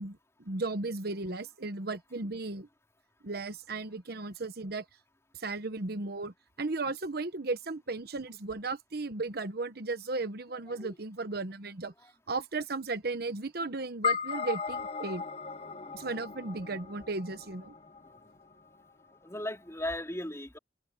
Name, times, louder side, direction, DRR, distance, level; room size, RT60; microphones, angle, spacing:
voice 1, 0.0-2.7 3.2-4.8 5.3-11.9 12.3-15.2 15.9-17.7, right 3 dB, 60° right, 1.1 m, -35 dB
sound 1, 14.0-18.6, left 6 dB, 35° left, 1.1 m, -36 dB
voice 2, 19.1-20.6, left 1 dB, 15° left, 4.0 m, -38 dB
head